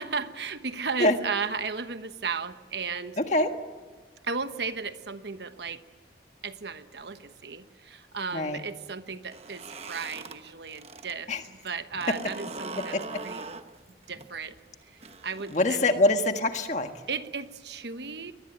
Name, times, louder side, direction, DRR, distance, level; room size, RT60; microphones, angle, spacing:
voice 1, 0.0-3.2 4.2-5.8 6.4-13.0 13.2-13.5 14.1-14.6 14.9-15.8 17.1-18.3, right 5 dB, 65° right, 10 dB, 1.1 m, -35 dB
voice 2, 3.2-3.5 8.3-8.6 11.3-11.4 12.9-13.0 15.5-16.9, left 2 dB, 40° left, 6 dB, 1.7 m, -24 dB
sound 1, 9.2-11.1 11.4-16.2, right 3 dB, 35° right, 1.0 m, -42 dB
23.0 x 19.5 x 9.0 m, 1.4 s
head